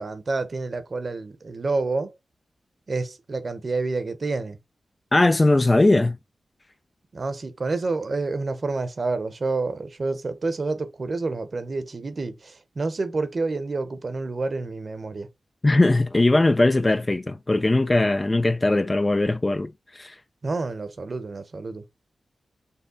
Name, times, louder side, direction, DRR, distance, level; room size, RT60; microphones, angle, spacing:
voice 1, 0.0-2.1 2.9-4.6 7.1-15.3 20.4-21.8, right 3 dB, 55° right, 0.8 m, -28 dB
voice 2, 5.1-6.2 15.6-20.1, left 2 dB, 30° left, 0.4 m, -20 dB
5.6 x 2.1 x 3.8 m
cardioid pair, 50°, 0 cm